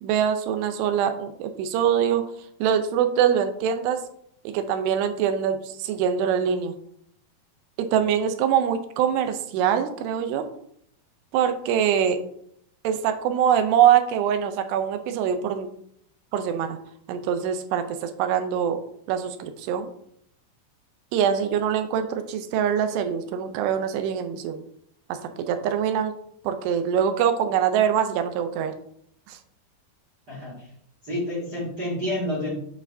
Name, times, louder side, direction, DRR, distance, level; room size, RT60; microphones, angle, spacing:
voice 1, 0.0-2.3 2.6-4.0 4.4-6.7 7.8-10.5 11.3-12.2 12.8-15.7 16.3-16.8 17.1-18.8 19.1-19.9 21.1-24.6 25.1-26.1 26.4-28.7 29.3-29.4, right 8 dB, 80° right, 8 dB, 2.6 m, -23 dB
voice 2, 30.3-30.6 31.0-32.6, left 1 dB, 40° right, -8 dB, 1.5 m, -29 dB
8.2 x 4.3 x 2.6 m, 0.68 s
omnidirectional pair, 4.9 m